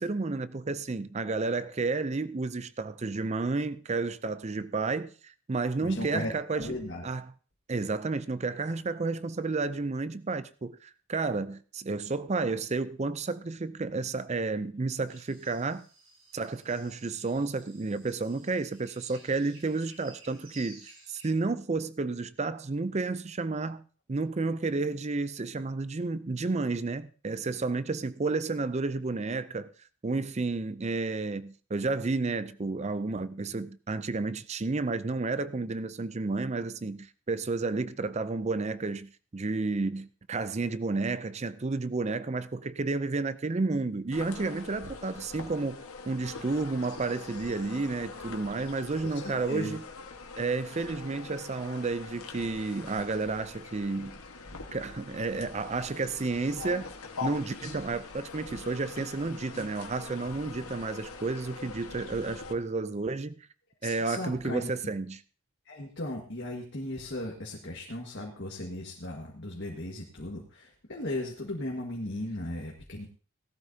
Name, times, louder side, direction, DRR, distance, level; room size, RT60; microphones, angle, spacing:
voice 1, 0.0-6.8 7.0-7.3 7.7-15.9 16.3-23.8 24.1-29.7 30.0-49.8 50.4-54.2 54.7-56.9 57.2-63.5 63.8-65.2, right 3 dB, 30° right, 0.5 m, -31 dB
voice 2, 5.8-7.1 49.2-49.8 63.8-64.9 65.7-73.1, left 1 dB, 55° left, 1.6 m, -37 dB
sound 1, 15.1-21.3, right 2 dB, 70° right, 6.7 m, -54 dB
sound 2, 44.1-62.5, left 4 dB, 80° left, 1.5 m, -43 dB
17.5 x 12.5 x 2.8 m
head